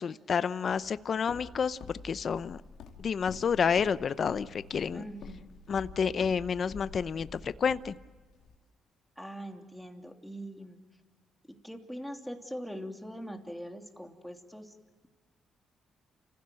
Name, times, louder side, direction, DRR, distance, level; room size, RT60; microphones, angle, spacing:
voice 1, 0.0-1.8 2.0-2.6 3.0-5.0 5.7-7.9, left 6 dB, 50° left, 15 dB, 0.7 m, -29 dB
Walk footsteps, 0.7-8.6, left 5 dB, 75° left, 2.7 m, -48 dB
voice 2, 4.9-5.5 9.2-10.8 11.5-14.8, equal, ahead, 3 dB, 3.1 m, -42 dB
30.0 x 16.0 x 7.8 m, 1.4 s
cardioid pair, 90°, 0 cm